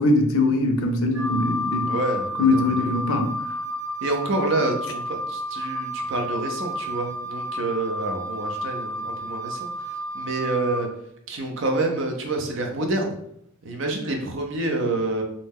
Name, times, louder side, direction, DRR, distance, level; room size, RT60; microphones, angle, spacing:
voice 1, 0.0-1.9 2.4-3.3, left 2 dB, 80° left, 5 dB, 0.5 m, -21 dB
Wind instrument woodwind instrument, 1.1-10.8, left 1 dB, 15° right, 1.0 m, -31 dB
voice 2, 1.8-3.0 4.0-9.7 10.1-10.9 11.3-13.1 13.6-15.2, right 2 dB, 60° right, 2 dB, 0.5 m, -27 dB
2.6 x 2.1 x 3.4 m, 0.71 s
head